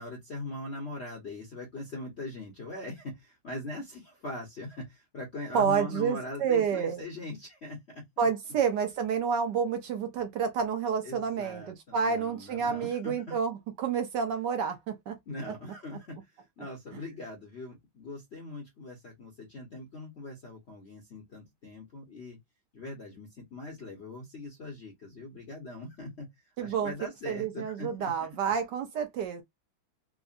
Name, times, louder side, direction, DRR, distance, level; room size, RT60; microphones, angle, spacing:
voice 1, 0.0-8.0 11.0-13.4 15.3-22.4 22.7-26.3 26.6-28.3, left 2 dB, 50° left, 0.7 m, -41 dB
voice 2, 5.5-7.0 8.2-15.1 26.6-26.9 27.3-29.4, right 6 dB, 70° right, 1.2 m, -29 dB
3.6 x 2.1 x 2.4 m
omnidirectional pair, 2.2 m